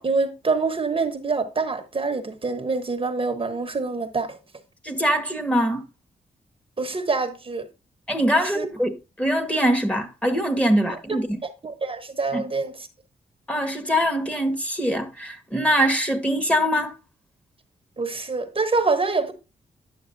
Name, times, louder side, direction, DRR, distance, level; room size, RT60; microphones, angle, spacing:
voice 1, 0.0-4.4 6.8-7.7 8.4-8.6 10.9-11.2 11.6-12.7 18.0-19.3, right 4 dB, 35° right, 1.0 m, -26 dB
voice 2, 4.8-5.8 8.1-11.4 12.3-12.5 13.5-16.9, equal, 10° left, 1.4 m, -23 dB
9.8 x 6.6 x 2.6 m
cardioid pair, 80°, 16 cm